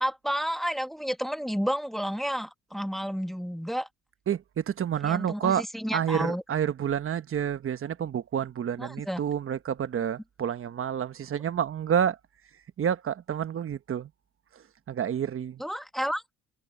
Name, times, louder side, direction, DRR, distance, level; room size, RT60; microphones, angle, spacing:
voice 1, 0.0-3.9 5.0-6.4 8.8-9.2 15.6-16.2, equal, ahead, 1.6 m, -31 dB
voice 2, 4.3-5.7 5.9-12.2 12.5-14.1 14.5-15.6, right 8 dB, 45° right, 1.0 m, -29 dB
cardioid pair, 90°, 30 cm